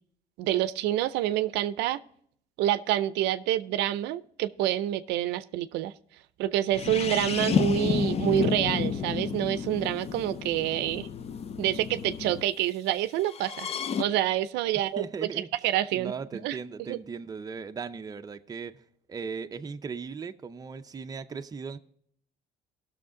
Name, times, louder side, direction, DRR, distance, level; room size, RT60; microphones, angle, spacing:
voice 1, 0.4-2.0 2.6-5.9 6.4-11.1 11.6-13.7 14.0-16.6 16.9-17.0, right 13 dB, 90° right, 0.5 m, -27 dB
sound 1, 6.7-12.4 13.3-14.0, left 6 dB, 35° left, 0.4 m, -30 dB
voice 2, 14.7-15.5 15.9-18.8 19.1-21.8, right 5 dB, 20° right, 0.5 m, -38 dB
17.0 x 6.5 x 3.7 m
cardioid pair, 110°, 17 cm